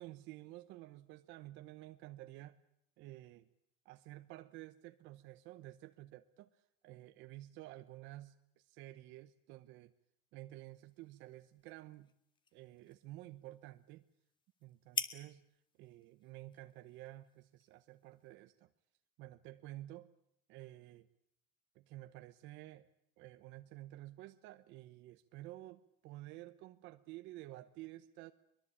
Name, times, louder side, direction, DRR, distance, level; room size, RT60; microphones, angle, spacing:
voice 1, 0.0-2.6 3.0-3.5 3.8-9.9 10.3-12.1 12.5-14.0 14.6-15.4 15.8-18.7 19.2-20.1 20.5-21.1 21.7-22.9 23.2-28.3, right 16 dB, 75° right, 10 dB, 1.0 m, -52 dB
sound 1, 10.6-18.4, left 4 dB, 25° left, 1.9 m, -49 dB
23.0 x 22.0 x 8.6 m, 0.74 s
cardioid pair, 130°, 19 cm